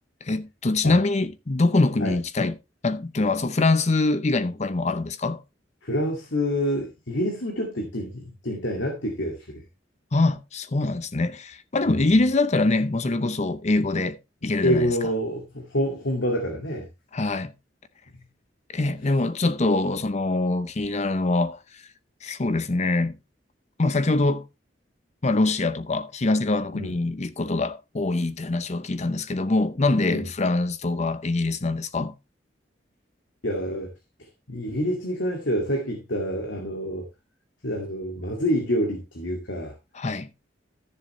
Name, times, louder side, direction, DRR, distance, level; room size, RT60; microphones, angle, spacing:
voice 1, 0.2-2.5 2.8-5.4 10.1-14.2 14.4-14.9 17.1-17.5 18.7-21.8 22.2-23.1 23.8-24.4 25.2-32.1 39.9-40.3, left 2 dB, 40° left, 0.7 m, -24 dB
voice 2, 5.8-9.6 11.8-12.1 14.6-16.9 26.7-26.9 30.1-30.3 33.4-33.9 34.5-37.1 37.6-39.7, equal, 85° left, 2.1 m, -27 dB
13.5 x 7.3 x 3.2 m
head